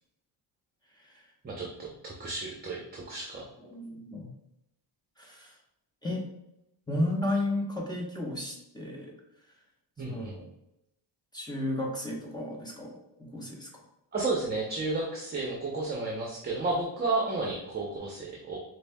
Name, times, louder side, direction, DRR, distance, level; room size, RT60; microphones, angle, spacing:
voice 1, 1.4-3.4 10.0-10.4 14.1-18.6, right 3 dB, 20° right, -2 dB, 0.7 m, -32 dB
voice 2, 3.6-4.3 5.2-5.5 6.0-6.3 6.9-9.1 10.1-10.4 11.3-13.7, left 1 dB, 10° left, -2 dB, 0.8 m, -33 dB
4.9 x 2.7 x 2.2 m, 0.84 s
cardioid pair, 95°, 45 cm